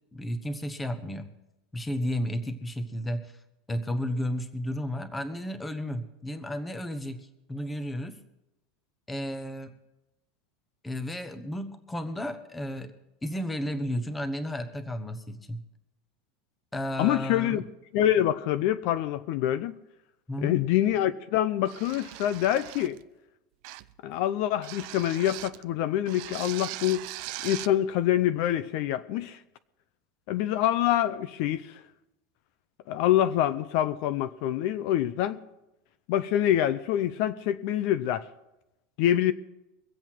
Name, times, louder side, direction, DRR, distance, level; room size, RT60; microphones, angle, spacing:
voice 1, 0.1-1.3 1.7-3.4 3.7-8.2 9.1-9.7 10.8-12.9 13.2-15.6 16.7-17.6 20.3-20.6, equal, 10° left, 1.0 m, -33 dB
voice 2, 17.0-17.6 17.9-19.8 20.4-23.0 24.0-27.1 27.4-29.4 30.3-31.8 32.9-35.4 36.1-38.3 39.0-39.3, left 12 dB, 55° left, 0.6 m, -26 dB
sound 1, 21.6-23.0 23.6-24.0 24.6-25.6 26.0-27.8, right 17 dB, 55° right, 0.5 m, -40 dB
23.5 x 8.0 x 4.6 m
supercardioid pair, 155°, 0 cm